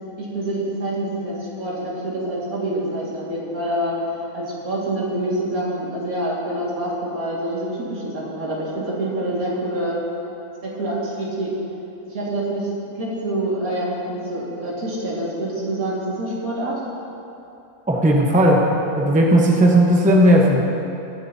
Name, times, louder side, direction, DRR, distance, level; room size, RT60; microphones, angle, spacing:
voice 1, 0.2-10.0 10.6-11.5 12.1-12.7 12.9-16.8, right 1 dB, 80° right, -6 dB, 2.7 m, -26 dB
voice 2, 17.9-18.7 19.0-20.6, right 1 dB, 5° right, -1 dB, 0.9 m, -15 dB
21.0 x 7.7 x 2.8 m, 2.8 s
omnidirectional pair, 1.5 m